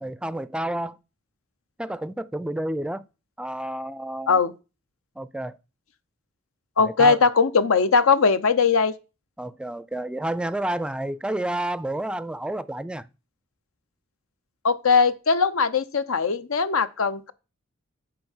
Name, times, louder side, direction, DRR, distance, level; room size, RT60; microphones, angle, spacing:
voice 1, 0.0-1.0 1.8-3.0 3.4-4.4 5.2-5.6 6.8-7.2 9.4-13.1, right 1 dB, 5° right, 0.4 m, -30 dB
voice 2, 6.8-8.9 14.6-17.3, left 5 dB, 85° left, 0.7 m, -20 dB
7.8 x 4.6 x 7.2 m
head